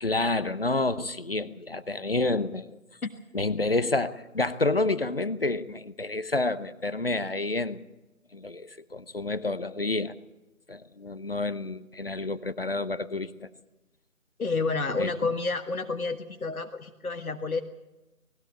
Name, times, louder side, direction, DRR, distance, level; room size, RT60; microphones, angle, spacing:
voice 1, 0.0-2.7 3.3-7.8 8.3-10.1 10.7-13.5 15.0-15.1, left 2 dB, 40° left, 13 dB, 0.9 m, -29 dB
voice 2, 14.4-17.6, left 3 dB, 75° left, 5 dB, 1.5 m, -29 dB
19.5 x 16.5 x 8.6 m, 1.0 s
figure-of-eight pair, 160°, 43 cm